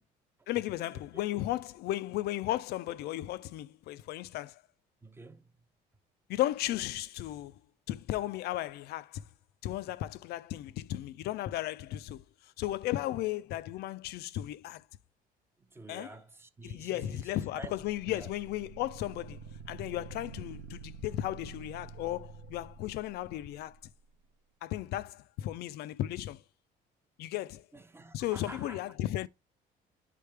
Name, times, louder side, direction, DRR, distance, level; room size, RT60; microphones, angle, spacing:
voice 1, 0.5-4.6 6.3-7.5 7.9-9.2 9.6-12.2 12.6-14.8 15.9-16.1 16.6-19.4 19.7-23.8 24.6-26.4 27.2-27.6 28.1-29.3, left 14 dB, 70° left, 0.4 m, -35 dB
voice 2, 5.0-5.5 15.7-17.8 18.1-18.3 27.7-28.8, right 3 dB, 15° right, 0.6 m, -48 dB
sound 1, 17.7-23.9, right 6 dB, 80° right, 0.7 m, -48 dB
10.0 x 3.4 x 3.3 m
cardioid pair, 110°, 17 cm